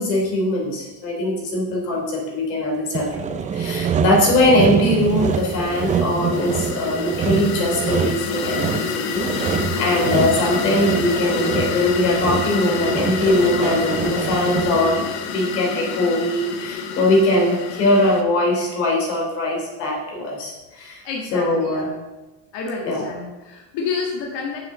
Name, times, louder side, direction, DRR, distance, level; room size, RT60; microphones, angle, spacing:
voice 1, 0.0-21.0 21.3-21.9 22.9-23.0, left 1 dB, 90° left, -1 dB, 3.3 m, -21 dB
Sawing, 2.9-15.0, right 7 dB, 15° right, 0.4 m, -25 dB
sound 1, 4.9-18.2, left 6 dB, 75° left, 1.3 m, -28 dB
voice 2, 21.0-21.9 22.5-24.6, left 4 dB, 55° left, 0 dB, 1.9 m, -29 dB
7.1 x 6.4 x 6.7 m, 1.1 s
supercardioid pair, 105°, 49 cm